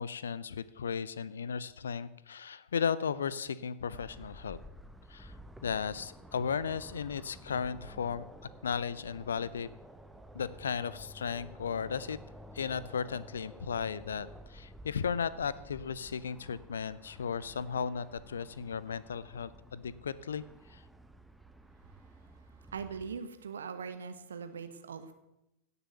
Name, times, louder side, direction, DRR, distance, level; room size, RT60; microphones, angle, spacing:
voice 1, 0.0-4.6 5.1-5.3 5.6-8.2 8.6-9.7 10.3-12.2 12.5-20.4 20.7-20.8, left 6 dB, 70° left, 18 dB, 0.6 m, -35 dB
sound 1, 3.9-23.2, equal, 5° right, 1.0 m, -52 dB
voice 2, 22.7-25.1, right 6 dB, 65° right, 9 dB, 1.4 m, -41 dB
17.0 x 7.0 x 8.0 m, 0.91 s
figure-of-eight pair, 90°, 0 cm